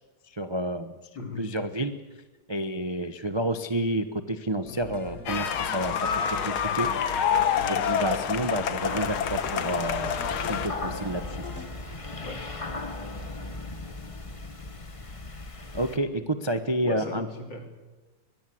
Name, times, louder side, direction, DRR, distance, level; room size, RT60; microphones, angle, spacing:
voice 1, 0.3-1.0 1.4-2.0 2.5-6.9 7.7-10.2 10.5-11.4 15.7-17.3, right 1 dB, 30° right, 9 dB, 0.5 m, -30 dB
voice 2, 1.2-1.5 12.2-12.5 16.8-17.7, left 2 dB, 60° left, 5 dB, 3.7 m, -37 dB
sound 1, 4.7-11.7, left 2 dB, 45° left, 3.2 m, -41 dB
sound 2, 5.3-10.7, left 8 dB, 75° left, 2.1 m, -27 dB
sound 3, 8.8-16.0, left 2 dB, 20° left, 1.2 m, -37 dB
23.5 x 20.5 x 7.8 m, 1.2 s
omnidirectional pair, 2.3 m